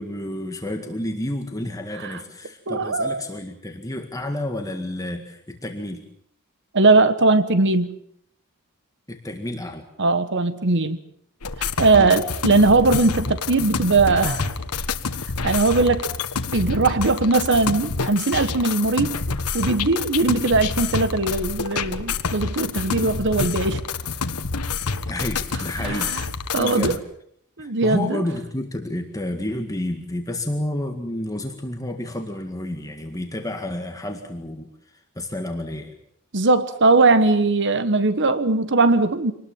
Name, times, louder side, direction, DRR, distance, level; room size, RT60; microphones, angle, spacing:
voice 1, 0.0-6.0 9.1-9.9 11.9-12.2 25.1-26.1 26.5-27.0 27.6-35.9, left 1 dB, 15° left, 4 dB, 2.0 m, -30 dB
voice 2, 2.7-3.2 6.7-7.9 10.0-11.0 11.6-14.5 15.4-16.1 16.5-19.2 19.5-23.8 25.8-26.2 26.5-26.9 27.6-28.2 36.3-39.3, right 3 dB, 55° right, 12 dB, 1.3 m, -19 dB
sound 1, 11.4-27.0, left 4 dB, 85° left, 1.4 m, -28 dB
26.0 x 19.5 x 7.3 m, 0.68 s
head